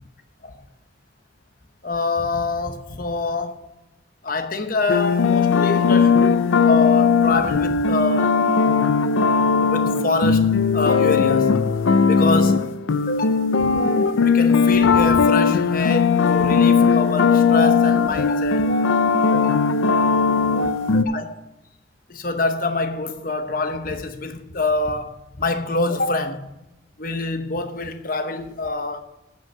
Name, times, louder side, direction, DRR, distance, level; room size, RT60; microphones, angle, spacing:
voice 1, 1.8-3.7 4.2-8.4 9.6-11.6 12.1-12.7 13.1-19.7 20.5-21.4 22.1-26.5 27.0-29.0, left 3 dB, 45° left, 0.9 m, -26 dB
sound 1, 4.9-21.0, left 5 dB, 80° left, 0.5 m, -18 dB
9.5 x 5.5 x 7.4 m
head